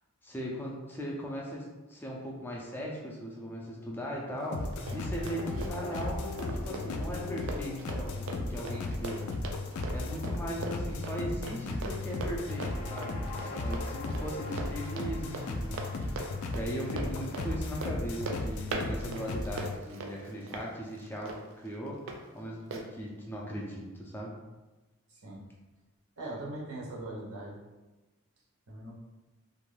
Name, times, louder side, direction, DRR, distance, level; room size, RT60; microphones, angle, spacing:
voice 1, 0.2-9.3 9.9-24.3, equal, 10° left, -3 dB, 0.3 m, -39 dB
Run, 4.4-22.2 22.7-22.8, right 2 dB, 65° right, 0.4 m, -41 dB
sound 1, 4.5-19.8, left 2 dB, 85° left, 0.3 m, -36 dB
voice 2, 25.1-25.4 26.2-27.6 28.7-28.9, right 1 dB, 85° right, -4 dB, 0.8 m, -40 dB
2.5 x 2.2 x 3.2 m, 1.1 s
head